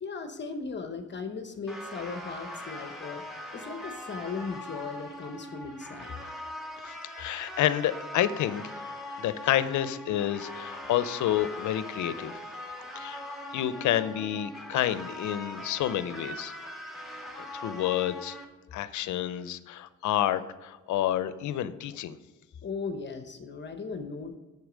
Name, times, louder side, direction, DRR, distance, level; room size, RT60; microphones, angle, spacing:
voice 1, 0.0-3.2 3.5-6.1 22.6-24.4, left 4 dB, 35° left, 7 dB, 0.9 m, -37 dB
sound 1, 1.7-18.5, left 1 dB, ahead, 1.7 m, -41 dB
voice 2, 6.8-8.7 9.2-12.4 13.0-13.2 13.5-16.5 17.5-18.4 18.7-22.2, left 12 dB, 75° left, 14 dB, 0.6 m, -29 dB
8.0 x 6.9 x 5.1 m, 1.2 s
cardioid pair, 90°, 30 cm